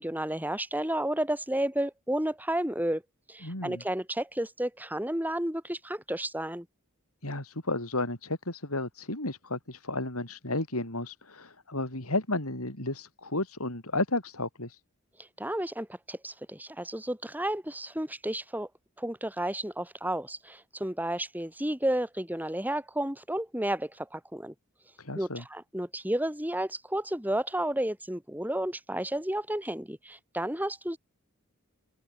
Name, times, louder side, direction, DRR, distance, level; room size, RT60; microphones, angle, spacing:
voice 1, 0.0-3.0 3.3-6.7 15.4-18.7 19.0-24.5 25.1-31.0, right 1 dB, 10° right, 6.7 m, -32 dB
voice 2, 3.4-3.8 7.2-14.8 25.0-25.4, left 2 dB, 80° left, 7.8 m, -33 dB
open air
head